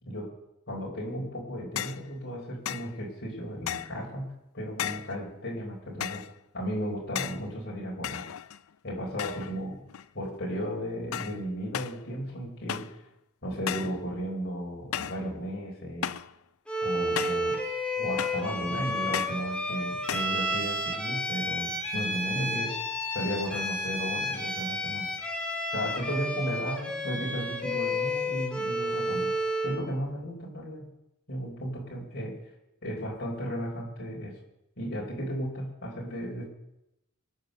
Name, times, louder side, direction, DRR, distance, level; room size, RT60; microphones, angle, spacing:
voice 1, 0.7-4.3 4.5-6.2 6.5-8.2 8.8-9.8 10.1-12.8 13.4-16.1 16.8-17.6 18.0-22.9 23.1-25.1 25.7-29.3 29.6-30.8 31.3-32.3 32.8-34.3 34.8-36.4, equal, 50° left, -4 dB, 4.6 m, -34 dB
sound 1, 1.8-2.1 2.6-2.9 3.7-4.0 4.8-5.2 6.0-6.3 7.1-7.5 8.0-8.7 9.2-9.6 9.9-10.3 11.1-11.4 11.7-12.0 12.7-13.0 13.7-14.0 14.9-15.2 16.0-16.3 17.2-17.5 18.2-18.5 19.1-19.4 20.1-20.4, left 10 dB, 70° left, 0.5 m, -35 dB
Bowed string instrument, 16.7-29.8, equal, 5° left, 2.5 m, -31 dB
24.5 x 8.3 x 6.6 m, 0.87 s
head